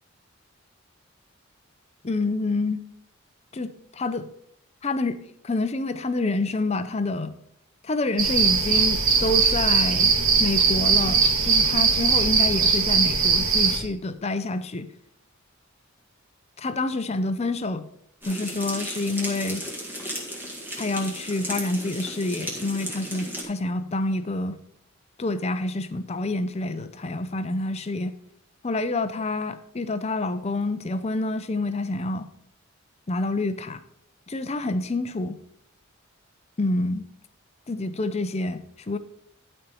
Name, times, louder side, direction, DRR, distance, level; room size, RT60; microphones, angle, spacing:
voice 1, 2.0-2.8 3.5-4.3 4.8-5.2 5.4-7.3 7.8-10.1 10.4-14.9 16.6-17.9 18.2-19.6 20.8-24.6 25.2-28.1 28.6-32.3 33.1-33.8 34.3-35.4 36.6-37.1 37.7-39.0, left 2 dB, 30° left, 0.6 m, -27 dB
sound 1, 8.2-13.8, right 5 dB, 70° right, 2.2 m, -20 dB
sound 2, 18.2-23.4, equal, 10° right, 1.9 m, -35 dB
11.5 x 4.4 x 5.4 m
head